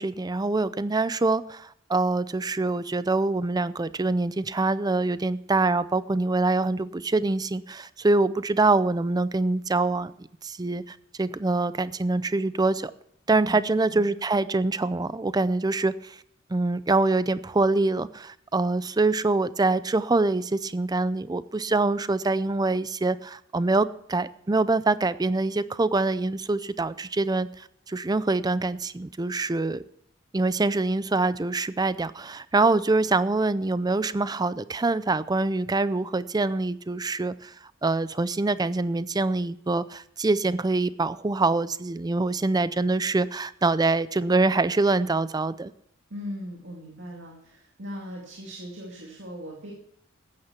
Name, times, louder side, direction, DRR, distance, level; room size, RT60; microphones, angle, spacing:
voice 1, 0.0-10.1 10.4-12.9 13.3-16.2 16.5-29.8 30.3-37.5 37.8-45.7, right 3 dB, 20° right, 16 dB, 0.5 m, -25 dB
voice 2, 13.4-14.1 46.1-49.7, equal, 65° right, -1 dB, 2.5 m, -39 dB
14.5 x 9.7 x 5.9 m, 0.69 s
head